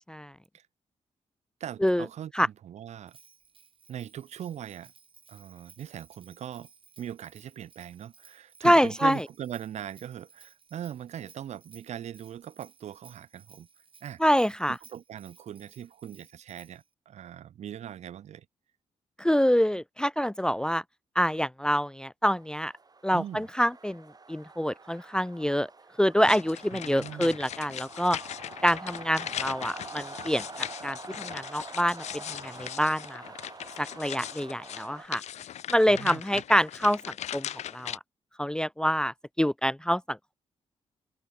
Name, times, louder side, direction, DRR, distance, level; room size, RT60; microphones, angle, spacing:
voice 1, 1.6-3.2 3.9-4.9 5.3-6.7 7.0-13.7 14.0-14.2 14.7-18.4 23.1-23.5 26.9-27.4 35.9-36.4, right 10 dB, 80° right, 1.5 m, -40 dB
Bell, 3.1-16.9, right 6 dB, 50° right, 5.1 m, -58 dB
voice 2, 8.6-9.2 14.2-14.8 19.2-20.8 21.2-22.7 23.0-24.0 24.3-25.7 26.0-28.2 28.6-32.0 32.3-33.2 33.8-35.2 35.7-37.0 37.3-37.5 37.7-38.0 38.4-40.3, equal, 5° left, 0.4 m, -26 dB
sound 1, 22.4-35.1, right 4 dB, 35° right, 8.0 m, -46 dB
sound 2, 26.2-38.0, left 11 dB, 75° left, 0.7 m, -39 dB
cardioid pair, 80°, 12 cm